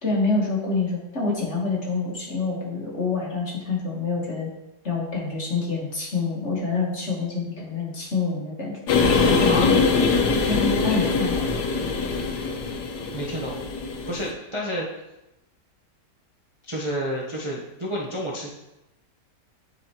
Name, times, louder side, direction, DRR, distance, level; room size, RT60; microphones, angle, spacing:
voice 1, 0.0-4.5 4.8-8.8 9.2-9.8 10.5-11.4, left 3 dB, 45° left, -3 dB, 1.5 m, -26 dB
sound 1, 8.9-14.3, left 4 dB, 80° left, 1.4 m, -22 dB
voice 2, 9.5-9.8 13.1-13.6 14.1-14.9 16.6-18.5, equal, 25° right, -5 dB, 0.7 m, -30 dB
10.0 x 4.2 x 2.8 m, 0.94 s
omnidirectional pair, 1.8 m